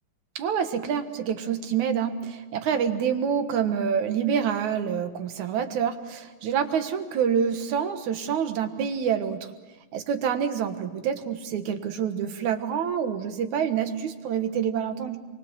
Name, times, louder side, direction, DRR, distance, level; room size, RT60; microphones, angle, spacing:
voice 1, 0.4-9.5 9.9-15.2, right 7 dB, 65° right, 7 dB, 2.6 m, -27 dB
28.5 x 23.0 x 7.5 m, 1.2 s
omnidirectional pair, 3.9 m